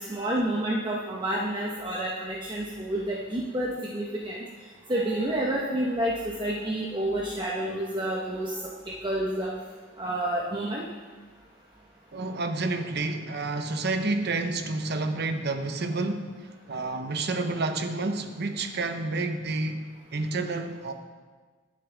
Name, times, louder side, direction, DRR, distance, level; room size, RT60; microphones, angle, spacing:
voice 1, 0.0-4.4 4.9-9.5 10.0-10.8, right 1 dB, 25° right, -3 dB, 1.2 m, -29 dB
voice 2, 12.1-19.9 20.1-20.9, right 3 dB, 55° right, 7 dB, 1.0 m, -29 dB
21.5 x 7.6 x 3.5 m, 1.4 s
head